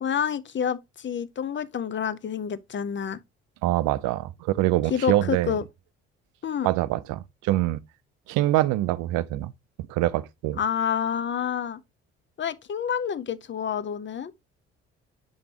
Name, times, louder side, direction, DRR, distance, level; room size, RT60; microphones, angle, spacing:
voice 1, 0.0-3.2 4.9-5.6 6.4-6.7 10.6-11.8 12.4-14.3, left 8 dB, 35° left, 0.7 m, -28 dB
voice 2, 3.6-5.6 6.6-7.8 8.3-9.5 9.9-10.6, right 16 dB, 70° right, 0.6 m, -24 dB
7.1 x 5.1 x 2.9 m
hypercardioid pair, 50°, 32 cm